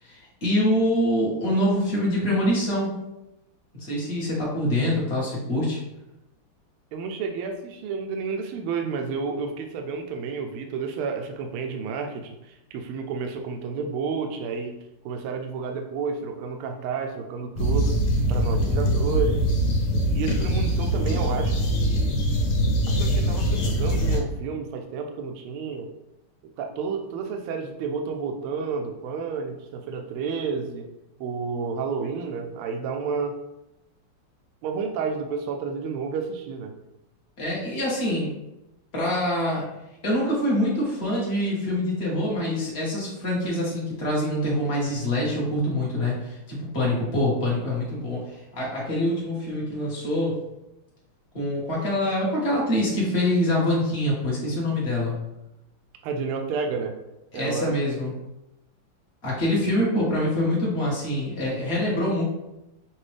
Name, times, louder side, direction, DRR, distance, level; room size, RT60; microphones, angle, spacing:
voice 1, 0.0-2.9 3.8-5.8 37.4-38.3 38.9-39.6 40.0-50.4 51.3-55.2 57.3-58.1 59.2-62.2, left 1 dB, 35° left, -5 dB, 1.4 m, -25 dB
voice 2, 6.9-14.7 15.0-18.0 18.3-19.4 20.1-22.2 22.9-25.9 26.6-30.9 31.2-33.4 34.6-36.7 56.0-56.9 57.3-57.7, right 5 dB, 80° right, 4 dB, 1.4 m, -30 dB
sound 1, 17.6-24.2, equal, 85° left, 1.8 m, -23 dB
6.0 x 2.6 x 3.3 m, 0.92 s
omnidirectional pair, 2.4 m